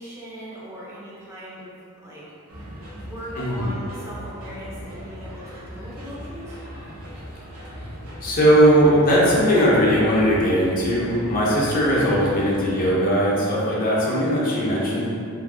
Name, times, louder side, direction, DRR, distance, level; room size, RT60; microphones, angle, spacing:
voice 1, 0.0-1.8 2.0-2.3 2.9-6.6 13.8-14.2, equal, 15° right, -8 dB, 0.5 m, -39 dB
sound 1, 2.5-12.9, equal, 70° right, 0.7 m, -39 dB
voice 2, 3.4-3.7 8.2-15.1, equal, 40° left, -6 dB, 0.6 m, -19 dB
2.7 x 2.6 x 2.5 m, 2.4 s
head